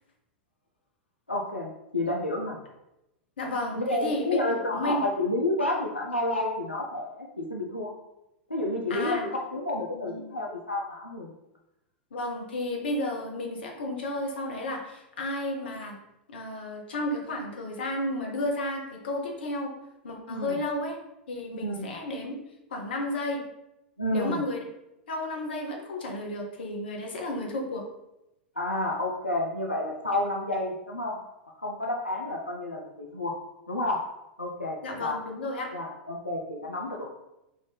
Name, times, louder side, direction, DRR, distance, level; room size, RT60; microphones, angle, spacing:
voice 1, 1.3-2.6 3.7-7.9 8.5-11.3 20.3-20.6 21.5-21.9 24.0-24.4 28.6-31.2 31.6-33.4 33.7-34.0 34.4-35.2 35.7-37.1, left 1 dB, 90° left, -1 dB, 0.4 m, -30 dB
voice 2, 3.4-5.0 8.9-9.3 9.9-10.4 12.1-16.0 16.3-19.7 20.0-21.0 21.3-22.3 22.7-23.4 24.1-24.6 25.1-27.8 34.8-35.7, left 1 dB, 65° left, 1 dB, 0.8 m, -32 dB
3.8 x 2.5 x 3.3 m, 0.90 s
figure-of-eight pair, 90°, 6 cm